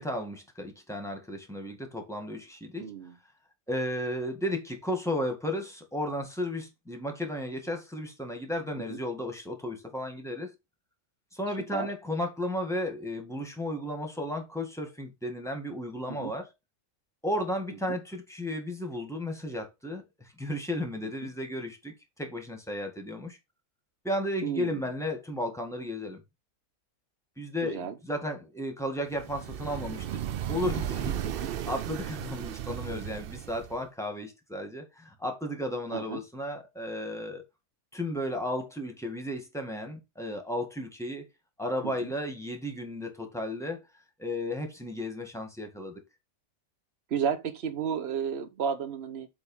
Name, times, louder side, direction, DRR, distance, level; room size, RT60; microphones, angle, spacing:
voice 1, 0.0-2.9 3.7-10.5 11.3-16.5 17.2-23.4 24.0-26.2 27.4-30.2 30.5-37.4 37.9-41.3 41.6-43.8 44.2-46.0, left 1 dB, ahead, 1.8 m, -34 dB
voice 2, 2.8-3.1 8.9-9.0 11.7-11.9 16.1-16.3 17.9-18.0 21.2-21.3 24.4-24.9 27.6-28.0 31.2-31.5 35.9-36.2 41.8-42.1 47.1-49.3, right 7 dB, 45° right, 1.2 m, -33 dB
sound 1, 29.1-33.8, right 10 dB, 70° right, 0.5 m, -35 dB
7.8 x 3.6 x 5.5 m
omnidirectional pair, 1.6 m